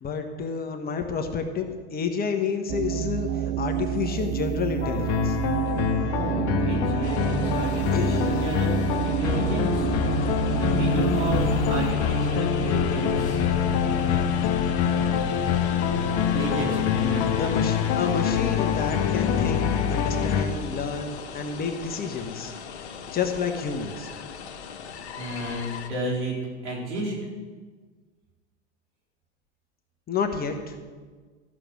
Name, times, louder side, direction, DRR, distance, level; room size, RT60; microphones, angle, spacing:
voice 1, 0.0-5.4 7.9-8.4 17.3-22.5 23.1-24.1 30.1-30.8, left 6 dB, 25° left, 4 dB, 1.3 m, -30 dB
sound 1, 2.7-11.9, right 11 dB, 35° right, 0.4 m, -29 dB
sound 2, 4.8-20.5, left 8 dB, 45° left, 1.1 m, -25 dB
voice 2, 5.9-13.4 16.3-17.5 25.2-26.3 26.6-27.1, right 1 dB, 80° right, -3 dB, 4.5 m, -31 dB
sound 3, 7.0-25.9, left 6 dB, 70° left, 1.4 m, -40 dB
14.0 x 6.8 x 6.3 m, 1.5 s
hypercardioid pair, 100°, 34 cm